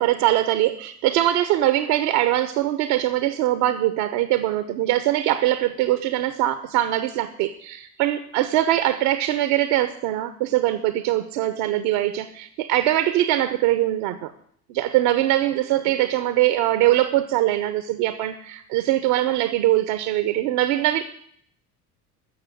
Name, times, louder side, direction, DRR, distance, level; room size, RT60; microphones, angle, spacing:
voice 1, 0.0-14.3 14.7-21.0, right 14 dB, 55° right, 12 dB, 1.0 m, -22 dB
13.5 x 6.9 x 9.7 m, 0.64 s
figure-of-eight pair, 60°, 47 cm